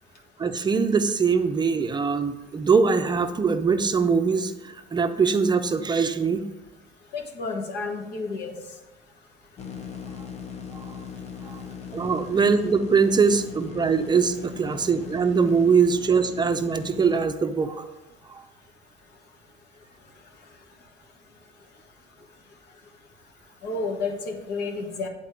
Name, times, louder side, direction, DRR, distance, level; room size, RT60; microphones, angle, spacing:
voice 1, 0.4-6.4 11.5-11.6 11.9-17.9, right 5 dB, 25° right, 8 dB, 0.5 m, -22 dB
voice 2, 7.1-8.5 23.6-25.1, left 3 dB, 80° left, 3 dB, 1.3 m, -30 dB
sound 1, 9.6-17.3, left 7 dB, 40° left, 0.8 m, -39 dB
8.5 x 4.1 x 4.8 m, 0.99 s
cardioid pair, 110°, 17 cm